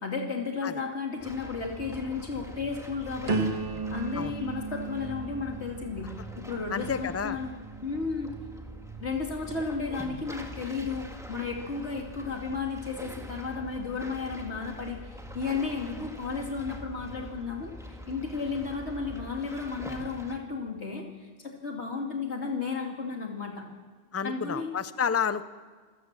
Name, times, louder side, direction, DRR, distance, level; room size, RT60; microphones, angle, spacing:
voice 1, 0.0-6.1 6.4-7.5 7.8-8.3 9.0-23.6 24.2-24.7, left 4 dB, 80° left, 1 dB, 2.7 m, -33 dB
sound 1, 1.2-20.4, right 1 dB, 5° right, 2.0 m, -44 dB
sound 2, 3.3-9.1 9.7-10.1, right 3 dB, 35° right, 1.8 m, -36 dB
voice 2, 6.7-7.4 24.1-25.4, left 7 dB, 15° left, 12 dB, 0.6 m, -30 dB
26.5 x 17.5 x 7.4 m, 1.5 s
omnidirectional pair, 1.1 m